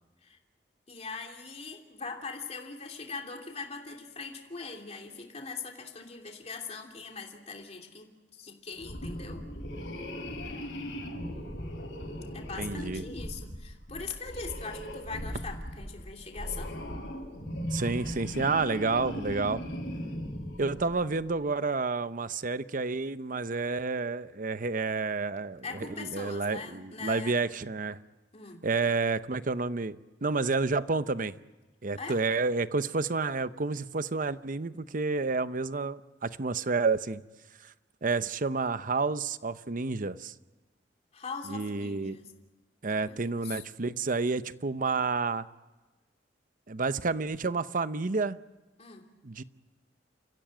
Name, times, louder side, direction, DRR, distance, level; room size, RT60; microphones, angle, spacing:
voice 1, 0.9-9.4 12.3-16.7 25.6-27.4 28.3-28.6 32.0-32.2 41.1-42.3 42.8-43.6 48.8-49.0, left 4 dB, 35° left, 3.0 m, -41 dB
sound 1, 8.8-21.3, equal, 85° left, 6.8 m, -38 dB
voice 2, 12.6-13.0 17.7-19.6 20.6-28.0 28.6-31.3 31.8-37.2 37.6-37.7 38.0-40.3 41.5-42.2 42.8-45.5 46.7-48.4 49.2-49.4, right 4 dB, 50° right, 0.8 m, -30 dB
29.5 x 15.5 x 9.1 m
head